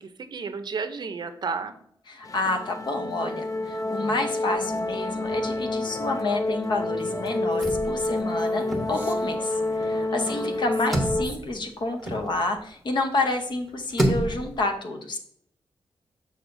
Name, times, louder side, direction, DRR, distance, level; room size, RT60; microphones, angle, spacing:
voice 1, 0.0-1.7 10.1-10.4, right 5 dB, 50° right, 9 dB, 0.6 m, -33 dB
voice 2, 2.1-15.2, left 2 dB, 55° left, 5 dB, 0.9 m, -29 dB
sound 1, 2.2-11.3, left 2 dB, 40° left, 0.5 m, -29 dB
sound 2, 4.6-5.8 6.1-6.2 6.5-12.9 13.4-14.6, right 1 dB, ahead, 1.1 m, -31 dB
Female speech woman speaking, 7.0-11.6, right 2 dB, 20° right, 1.0 m, -43 dB
6.6 x 6.2 x 2.6 m, 0.66 s
wide cardioid pair, 130°, 9 cm